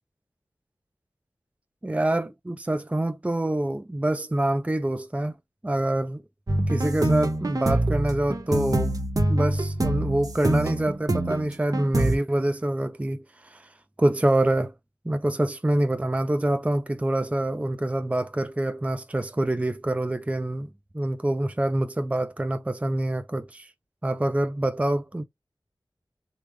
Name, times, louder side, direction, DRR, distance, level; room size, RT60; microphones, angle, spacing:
voice 1, 1.8-5.3 5.6-6.2 6.7-8.9 9.3-13.7 14.0-14.7 15.1-20.7 20.9-23.7 24.0-25.2, right 1 dB, 15° right, 0.4 m, -26 dB
sound 1, 6.5-12.2, right 1 dB, 45° right, 0.8 m, -25 dB
3.4 x 2.0 x 3.2 m
wide cardioid pair, 45°, 8 cm